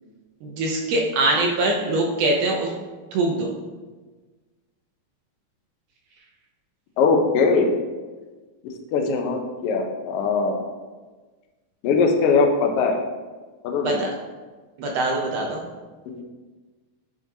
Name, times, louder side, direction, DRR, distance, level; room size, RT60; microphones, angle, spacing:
voice 1, 0.4-2.7 3.1-3.5 13.8-14.1 14.8-15.6, right 2 dB, 75° right, 0 dB, 1.5 m, -23 dB
voice 2, 7.0-7.8 8.9-10.7 11.8-13.0 13.6-14.1 16.1-16.2, left 4 dB, 90° left, 2 dB, 1.3 m, -21 dB
10.5 x 3.7 x 2.7 m, 1.3 s
omnidirectional pair, 3.5 m